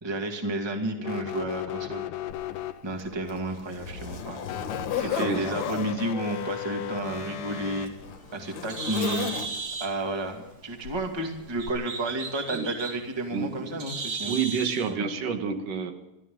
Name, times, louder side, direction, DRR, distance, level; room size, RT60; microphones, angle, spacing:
voice 1, 0.0-2.1 2.8-4.4 4.9-7.9 8.3-9.3 9.8-14.3 14.9-15.0, right 2 dB, 10° right, 3 dB, 1.6 m, -31 dB
sound 1, 1.0-3.2 4.4-7.9, left 11 dB, 80° left, 2.5 m, -36 dB
Zipper (clothing), 2.3-2.4 3.0-5.9 6.9-9.9 10.8-11.1 11.7-11.8, left 7 dB, 65° left, 2.8 m, -34 dB
voice 2, 4.7-5.5 12.5-12.7 13.3-13.8 14.2-15.9, right 6 dB, 85° right, 5 dB, 3.2 m, -30 dB
Bird, 7.6-14.9, right 4 dB, 45° right, 1.3 m, -37 dB
27.0 x 13.5 x 3.9 m, 0.96 s
omnidirectional pair, 3.7 m